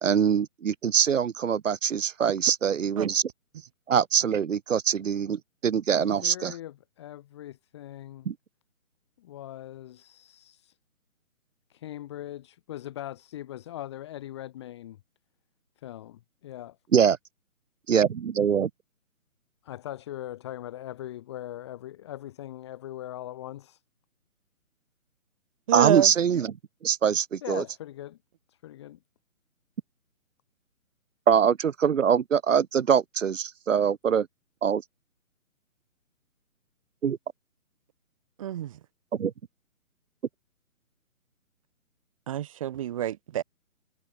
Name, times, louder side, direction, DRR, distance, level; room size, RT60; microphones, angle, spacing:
voice 1, 0.0-3.2 3.9-6.5 8.3-8.4 16.9-17.2 17.9-18.7 25.7-26.5 26.8-27.6 31.3-34.3 34.6-34.8 37.0-37.2 39.2-39.3, right 7 dB, 65° right, 0.9 m, -23 dB
voice 2, 6.0-8.3 9.2-10.7 11.7-15.0 15.8-16.8 19.6-23.8 27.4-28.2 28.6-29.0, left 13 dB, 20° left, 2.3 m, -40 dB
voice 3, 25.7-26.1 38.4-38.8 42.3-43.4, right 11 dB, 25° right, 3.4 m, -27 dB
hypercardioid pair, 170°, 42 cm